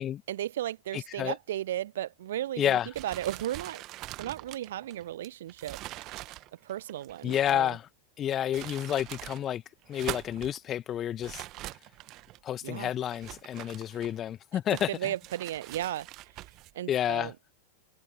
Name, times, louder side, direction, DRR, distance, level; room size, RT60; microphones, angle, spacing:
voice 1, 0.3-3.8 4.2-6.3 6.6-7.8 12.6-12.9 14.9-16.1 16.7-17.3, right 12 dB, 60° right, 1.2 m, -35 dB
voice 2, 0.9-1.3 2.6-2.9 7.2-7.9 8.2-9.6 9.9-11.5 12.4-15.1 16.9-17.3, left 10 dB, 30° left, 1.2 m, -30 dB
sound 1, 2.9-7.7 8.3-9.4 9.8-10.6 11.2-12.4 13.0-14.3 14.7-16.7, right 17 dB, 35° right, 1.5 m, -43 dB
figure-of-eight pair, 90°, 0 cm